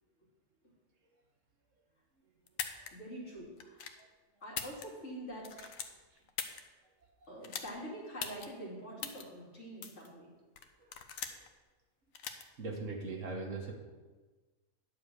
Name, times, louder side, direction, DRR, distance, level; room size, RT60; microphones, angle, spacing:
sound 1, 2.5-2.9 3.6-4.0 4.4-5.1 5.4-6.6 7.4-7.7 8.2-8.5 9.0-9.2 9.8-10.1 10.6-11.5 12.1-12.4, left 7 dB, 80° left, 1.1 m, -40 dB
voice 1, 2.9-3.9 4.4-5.6 7.3-10.3, right 1 dB, 60° left, -5 dB, 3.0 m, -45 dB
voice 2, 12.6-13.7, right 3 dB, 70° right, 2 dB, 1.7 m, -39 dB
10.0 x 4.9 x 6.8 m, 1.3 s
omnidirectional pair, 1.4 m